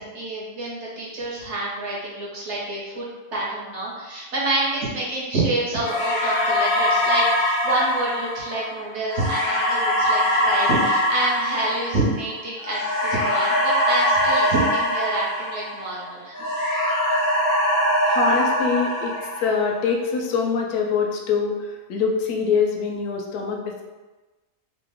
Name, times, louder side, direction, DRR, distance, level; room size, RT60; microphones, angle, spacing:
voice 1, 0.0-16.4, right 2 dB, 55° right, -5 dB, 1.0 m, -27 dB
sound 1, 5.8-16.0 16.3-19.8, equal, 55° left, 0.6 m, -22 dB
voice 2, 18.1-19.1 19.4-23.9, left 5 dB, 85° left, 1 dB, 1.1 m, -24 dB
3.0 x 2.1 x 3.4 m, 1.2 s
omnidirectional pair, 1.6 m